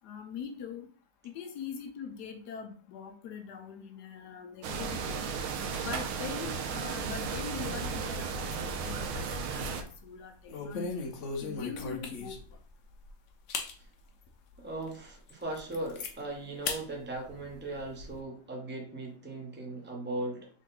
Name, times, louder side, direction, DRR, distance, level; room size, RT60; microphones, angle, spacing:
voice 1, 0.0-0.9 1.2-5.2 5.8-11.1 11.4-12.4, left 7 dB, 70° left, 5 dB, 1.1 m, -42 dB
sound 1, 4.6-9.8, right 5 dB, 85° right, 1.5 m, -34 dB
sound 2, 8.8-9.4 9.7-10.0 10.5-12.6 13.0-13.1 13.5-13.7 14.3-14.4 14.9-15.0 15.3-16.1 16.6-16.8 17.2-18.1, left 4 dB, 90° left, 0.6 m, -37 dB
voice 2, 14.6-20.5, right 2 dB, 15° right, 0 dB, 0.4 m, -38 dB
3.8 x 3.7 x 3.7 m, 0.42 s
omnidirectional pair, 2.2 m